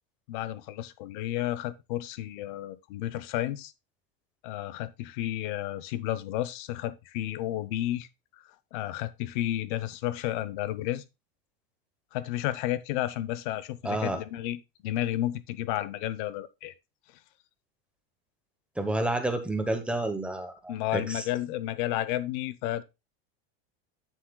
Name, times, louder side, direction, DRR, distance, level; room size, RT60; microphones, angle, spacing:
voice 1, 0.3-3.7 4.4-8.1 8.7-11.0 12.1-16.7 20.7-22.8, left 13 dB, 55° left, 0.9 m, -32 dB
voice 2, 13.8-14.2 18.8-21.3, right 1 dB, 5° right, 1.0 m, -30 dB
9.2 x 7.8 x 2.3 m
supercardioid pair, 160°, 30 cm